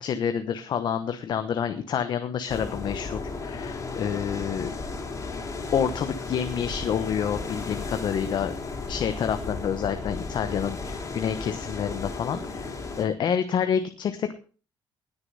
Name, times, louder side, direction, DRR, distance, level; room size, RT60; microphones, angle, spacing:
voice 1, 0.0-4.7 5.7-8.5 8.9-12.7 13.0-14.4, left 8 dB, 55° left, 9 dB, 1.1 m, -28 dB
sound 1, 2.5-13.0, left 3 dB, 35° left, 3.4 m, -34 dB
19.5 x 6.9 x 5.6 m, 0.38 s
cardioid pair, 135°, 9 cm